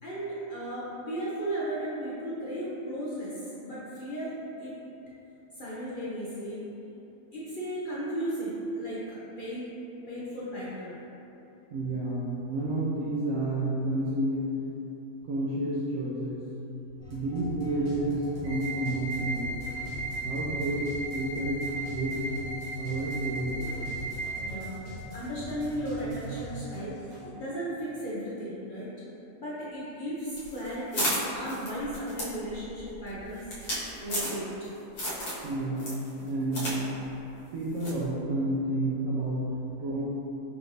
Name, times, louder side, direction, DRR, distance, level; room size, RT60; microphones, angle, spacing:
voice 1, 0.0-4.8 5.6-6.7 7.3-9.8 10.1-11.0 24.4-24.8 25.1-27.0 27.3-28.9 29.4-33.4 34.0-34.5, right 1 dB, 65° left, -9 dB, 0.5 m, -35 dB
voice 2, 11.7-14.5 15.2-16.4 17.1-19.5 20.2-22.2 22.8-23.9 35.4-35.9 36.2-36.7 37.5-39.5 39.8-40.0, right 1 dB, 70° right, -8 dB, 0.9 m, -30 dB
sound 1, 17.0-27.3, left 1 dB, 85° right, 1.5 m, -41 dB
sound 2, 18.4-24.4, right 3 dB, 45° right, 0.8 m, -36 dB
sound 3, 30.3-34.7 35.0-35.5 35.8-36.8 37.0-37.1 37.8-38.0, equal, 80° left, 1.7 m, -33 dB
5.0 x 2.6 x 3.2 m, 3.0 s
omnidirectional pair, 1.7 m